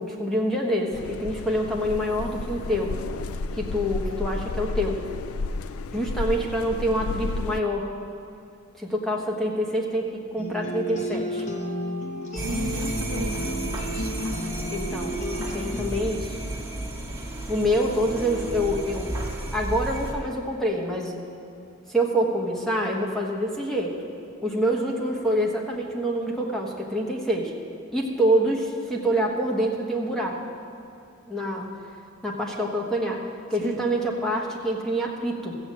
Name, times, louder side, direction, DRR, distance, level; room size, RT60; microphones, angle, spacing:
voice 1, 0.0-3.0 3.5-5.1 5.9-7.9 8.8-11.4 14.7-15.2 15.5-16.4 17.5-19.1 19.5-21.1 21.9-23.9 24.4-27.5 27.9-30.4 31.3-31.7 32.2-35.6, equal, ahead, -2 dB, 1.3 m, -26 dB
sound 1, 0.9-7.6, left 3 dB, 80° left, 0.4 m, -32 dB
sound 2, 10.4-16.0, equal, 35° left, 1.2 m, -32 dB
sound 3, 12.4-20.1, right 1 dB, 15° right, 1.6 m, -32 dB
voice 2, 12.4-14.3 33.6-33.9, right 1 dB, 65° right, 2 dB, 1.1 m, -35 dB
15.0 x 8.0 x 7.5 m, 2.5 s
head